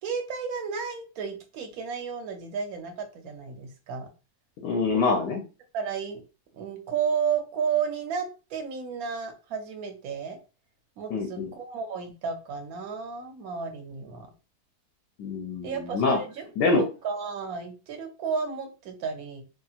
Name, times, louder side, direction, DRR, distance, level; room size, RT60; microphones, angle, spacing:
voice 1, 0.0-4.1 5.7-6.2 6.5-10.4 11.0-14.3 15.6-16.5 16.8-19.4, right 6 dB, 65° right, 5 dB, 1.1 m, -32 dB
voice 2, 4.6-5.4 11.1-11.5 15.2-16.2 16.6-16.8, left 3 dB, 85° left, 2 dB, 1.2 m, -25 dB
2.8 x 2.8 x 2.4 m, 0.32 s
omnidirectional pair, 1.7 m